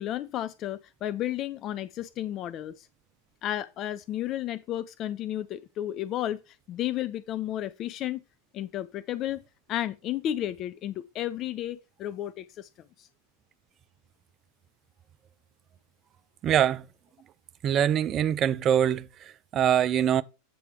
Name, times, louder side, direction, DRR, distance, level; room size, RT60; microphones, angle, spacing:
voice 1, 0.0-2.9 3.4-8.2 8.5-9.4 9.7-12.7 13.0-13.1, left 12 dB, 40° left, 0.4 m, -32 dB
voice 2, 16.4-16.8 17.6-19.1 19.5-20.2, right 9 dB, 35° right, 0.5 m, -23 dB
8.4 x 3.3 x 5.8 m
figure-of-eight pair, 90°, 0 cm